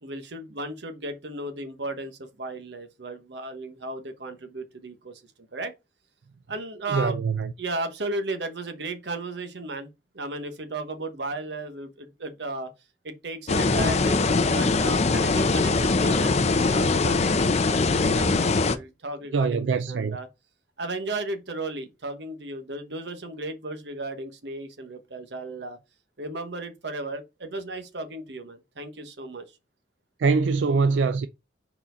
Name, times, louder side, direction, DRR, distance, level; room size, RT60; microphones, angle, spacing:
voice 1, 0.0-5.7 6.5-7.2 7.6-9.9 10.1-12.7 13.0-17.5 18.1-18.3 18.6-20.3 20.8-25.8 26.2-29.5, right 2 dB, 65° right, 1.1 m, -35 dB
voice 2, 6.9-7.5 19.3-20.2 30.2-31.3, right 4 dB, 85° right, 0.4 m, -23 dB
sound 1, 13.5-18.8, left 3 dB, 40° left, 0.6 m, -22 dB
4.6 x 4.3 x 5.0 m
head